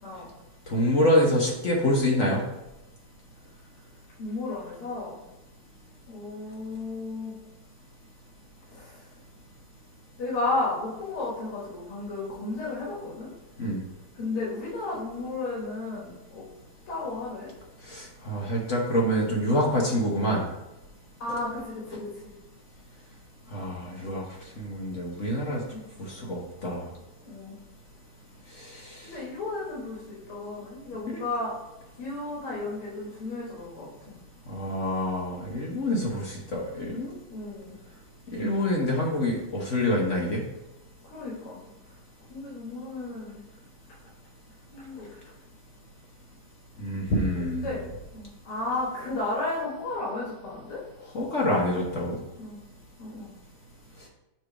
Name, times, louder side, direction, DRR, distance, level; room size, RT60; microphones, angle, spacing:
voice 1, 0.7-2.4 13.6-13.8 17.9-20.4 21.3-21.4 23.5-24.2 24.6-25.6 26.1-26.8 28.6-29.0 31.1-31.2 34.5-37.1 38.3-40.4 46.8-47.8 51.1-52.2, left 1 dB, 55° left, -2 dB, 0.8 m, -26 dB
voice 2, 4.2-5.2 6.1-7.4 8.7-9.0 10.2-13.3 14.2-16.5 16.9-17.5 21.2-22.3 25.7-25.9 27.2-27.6 29.0-31.5 32.0-34.2 37.3-37.8 41.0-41.6 42.3-43.4 44.7-45.1 47.3-50.8 52.4-52.6 53.0-53.3, left 2 dB, 80° left, -5 dB, 2.3 m, -33 dB
6.8 x 3.4 x 4.8 m, 0.98 s
omnidirectional pair, 2.4 m